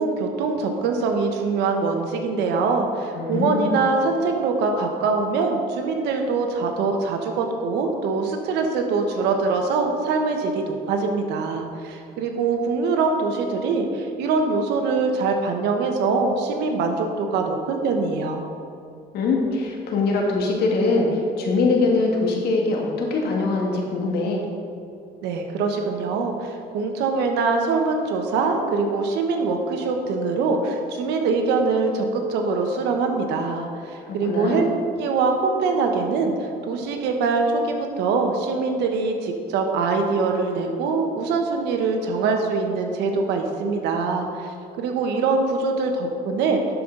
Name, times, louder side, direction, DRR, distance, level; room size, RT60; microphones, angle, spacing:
voice 1, 0.0-18.4 25.2-46.6, right 4 dB, 85° right, 4 dB, 1.2 m, -23 dB
voice 2, 3.1-3.7 19.1-24.4 34.1-34.6, left 3 dB, 70° left, 0 dB, 1.8 m, -22 dB
12.0 x 5.6 x 3.9 m, 2.5 s
cardioid pair, 110°, 17 cm